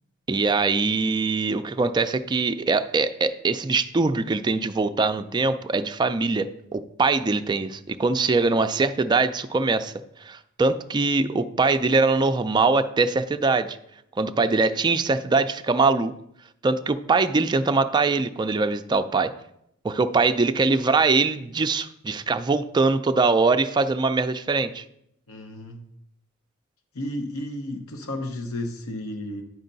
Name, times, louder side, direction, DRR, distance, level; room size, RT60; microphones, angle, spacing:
voice 1, 0.3-9.9 10.2-13.8 14.2-16.1 16.6-19.3 19.8-24.8, right 3 dB, 20° right, 8 dB, 0.3 m, -22 dB
voice 2, 25.3-25.8 26.9-29.4, left 1 dB, 85° left, 4 dB, 0.8 m, -32 dB
9.4 x 5.5 x 3.9 m, 0.76 s
head